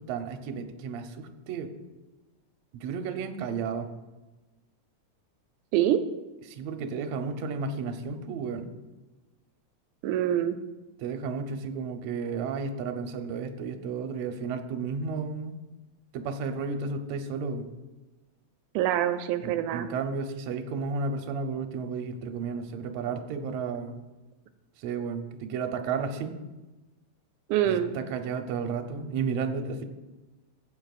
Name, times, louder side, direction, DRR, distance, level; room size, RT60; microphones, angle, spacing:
voice 1, 0.0-1.7 2.7-3.9 6.5-8.7 11.0-15.6 16.1-17.6 19.4-24.0 24.8-26.3 27.7-29.8, right 5 dB, 70° right, 5 dB, 2.0 m, -33 dB
voice 2, 10.0-10.6 18.8-19.9 27.5-27.9, right 11 dB, 90° right, 9 dB, 2.0 m, -25 dB
15.5 x 8.4 x 2.4 m, 1.1 s
omnidirectional pair, 3.4 m